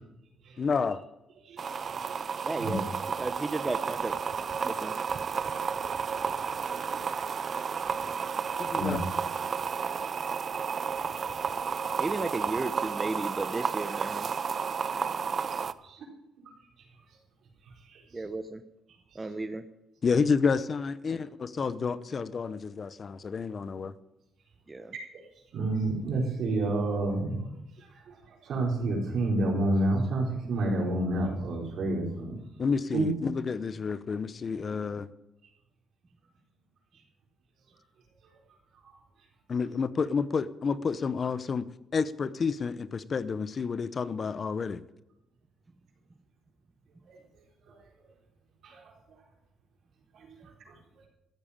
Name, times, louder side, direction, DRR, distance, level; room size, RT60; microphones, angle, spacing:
voice 1, 0.6-1.0 8.7-9.0 20.0-23.9 32.6-35.1 39.5-41.7 41.9-44.8, left 5 dB, 45° left, 16 dB, 0.7 m, -29 dB
voice 2, 1.5-2.7 6.5-6.9 7.7-7.9 8.7-9.0 11.8-11.9 15.8-16.0 17.9-18.0 25.5-27.4 27.8-28.1 28.4-32.4 32.9-33.1 47.1-47.2 47.7-47.8 48.6-48.8 50.1-50.3 50.7-50.8, right 2 dB, 70° right, 0 dB, 4.3 m, -30 dB
sound 1, 1.6-15.7, right 6 dB, 45° right, 0.6 m, -32 dB
voice 3, 2.4-2.8 3.2-4.2 4.6-4.9 12.0-14.3 18.1-18.6 19.1-19.6 24.7-24.9, right 3 dB, 20° right, 9 dB, 0.8 m, -34 dB
14.0 x 8.9 x 8.7 m, 0.91 s
cardioid pair, 90°, 0 cm